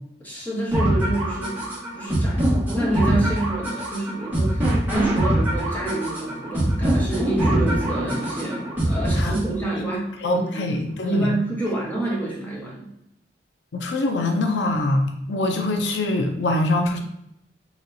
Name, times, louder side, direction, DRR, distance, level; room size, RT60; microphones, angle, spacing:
voice 1, 0.2-8.6 8.9-10.0 10.3-10.6 11.0-12.9, right 2 dB, 10° left, -5 dB, 1.1 m, -28 dB
sound 1, 0.7-9.7, right 1 dB, 10° right, 1.3 m, -23 dB
voice 2, 10.2-11.4 13.7-17.0, left 2 dB, 85° left, 4 dB, 0.5 m, -23 dB
4.1 x 3.0 x 2.7 m, 0.78 s
head